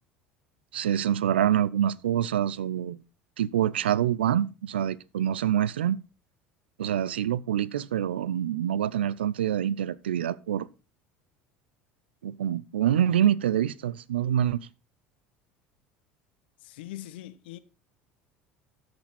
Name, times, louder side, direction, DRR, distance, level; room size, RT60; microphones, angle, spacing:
voice 1, 0.7-3.0 3.4-6.0 6.8-10.7 12.2-14.7, right 10 dB, 85° right, 0.4 m, -26 dB
voice 2, 16.6-17.6, left 14 dB, 75° left, 0.8 m, -41 dB
13.0 x 6.1 x 4.2 m
hypercardioid pair, 70°, 6 cm